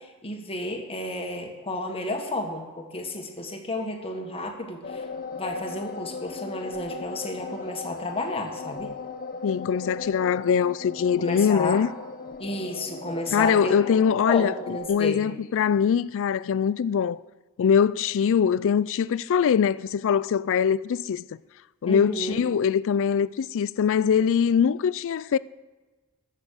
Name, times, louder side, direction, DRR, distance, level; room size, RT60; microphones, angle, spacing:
voice 1, 0.0-5.1 5.4-8.9 11.2-11.8 12.4-13.8 14.3-15.3 21.9-22.4, left 1 dB, 25° left, 1.6 m, -32 dB
sound 1, 4.8-14.9, left 4 dB, 40° left, 0.8 m, -38 dB
voice 2, 9.4-11.9 13.3-17.2 17.6-21.3 21.8-25.4, left 7 dB, 60° left, 0.3 m, -23 dB
14.0 x 7.4 x 6.5 m
head